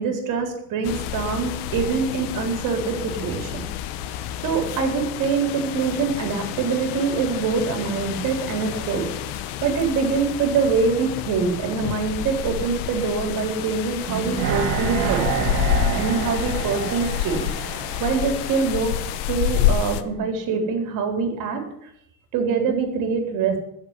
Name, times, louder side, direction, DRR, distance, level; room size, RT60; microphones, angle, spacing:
voice 1, 0.0-3.6 4.4-9.1 9.6-17.5 17.7-18.9 19.3-21.6 22.3-23.6, right 5 dB, 50° right, 4 dB, 4.1 m, -24 dB
sound 1, 0.8-20.0, left 11 dB, 85° left, 1.2 m, -29 dB
sound 2, 14.1-19.2 19.5-19.6, right 8 dB, 65° right, 2.4 m, -28 dB
13.0 x 7.4 x 9.9 m, 0.72 s
cardioid pair, 170°, 41 cm